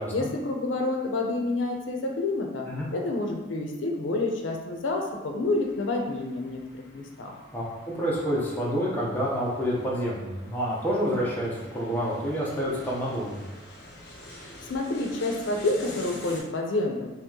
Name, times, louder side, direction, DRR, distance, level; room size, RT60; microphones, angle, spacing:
voice 1, 0.1-2.7 2.9-6.6 6.9-7.3 14.7-17.1, left 2 dB, 85° left, 2 dB, 0.5 m, -28 dB
sound 1, 5.5-16.4, left 1 dB, 55° left, 0.9 m, -47 dB
voice 2, 8.0-13.3, equal, 10° left, -6 dB, 0.7 m, -28 dB
2.9 x 2.9 x 3.6 m, 1.1 s
head